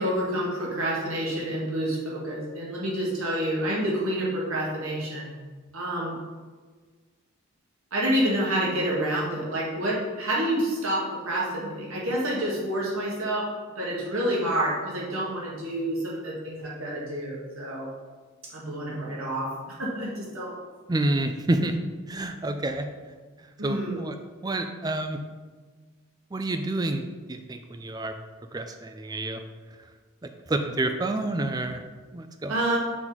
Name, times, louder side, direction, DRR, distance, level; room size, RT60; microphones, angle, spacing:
voice 1, 0.0-5.3 5.7-6.1 7.9-13.5 13.7-17.9 18.4-19.5 19.8-20.5 23.6-24.0 32.5-32.8, right 1 dB, 70° right, -4 dB, 1.6 m, -28 dB
voice 2, 20.9-21.7 22.1-22.9 23.6-24.2 24.4-25.2 26.3-28.1 28.5-29.4 30.5-31.8 32.1-32.6, right 2 dB, 20° right, 7 dB, 0.3 m, -28 dB
5.8 x 4.0 x 4.5 m, 1.4 s
head